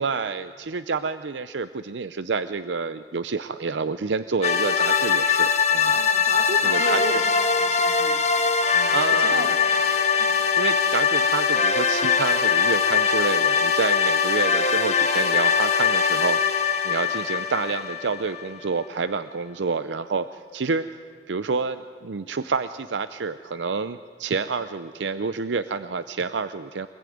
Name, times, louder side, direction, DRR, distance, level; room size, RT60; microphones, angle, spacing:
voice 1, 0.0-6.3 6.6-7.2 8.9-9.4 10.6-20.9 21.3-26.9, right 4 dB, 90° right, 12 dB, 0.6 m, -28 dB
sound 1, 4.4-18.6, left 6 dB, 40° left, 1.5 m, -22 dB
voice 2, 5.9-8.3 8.7-10.3, right 1 dB, 55° right, 3 dB, 2.8 m, -35 dB
24.0 x 20.5 x 9.3 m, 2.1 s
head